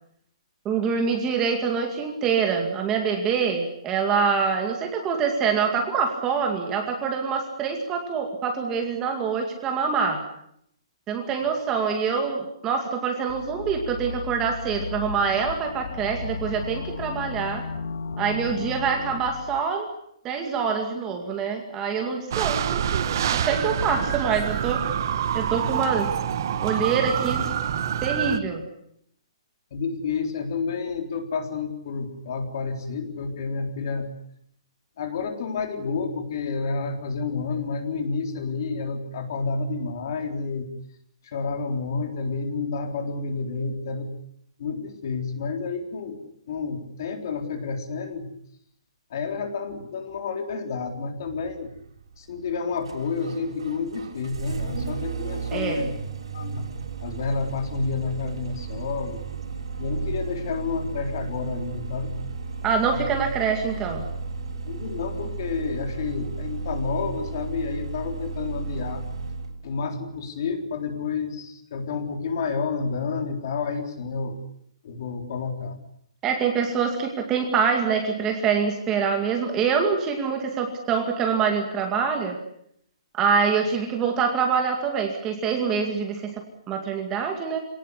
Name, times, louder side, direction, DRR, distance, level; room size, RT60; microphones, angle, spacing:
voice 1, 0.6-10.2 11.1-17.6 18.2-19.9 20.2-22.8 23.3-24.9 25.3-26.1 26.6-27.4 28.0-28.6 55.5-55.8 62.6-64.0 76.2-82.4 83.1-86.3 86.7-87.6, right 6 dB, 10° right, 3 dB, 2.2 m, -25 dB
sound 1, 13.3-19.6, left 4 dB, 60° left, 1.9 m, -35 dB
sound 2, 22.3-28.4, right 9 dB, 35° right, 1.2 m, -26 dB
voice 2, 29.7-34.1 35.0-40.7 41.2-44.1 44.6-46.2 46.5-48.3 49.1-51.7 52.2-55.9 56.3-56.7 57.0-59.2 59.8-62.2 62.9-63.1 64.7-69.0 69.6-74.4 74.8-75.8, left 4 dB, 35° left, 6 dB, 3.8 m, -30 dB
Engine starting, 51.2-69.6, right 4 dB, 65° right, 6.1 m, -34 dB
26.5 x 18.5 x 9.8 m, 0.72 s
hypercardioid pair, 180°, 3 cm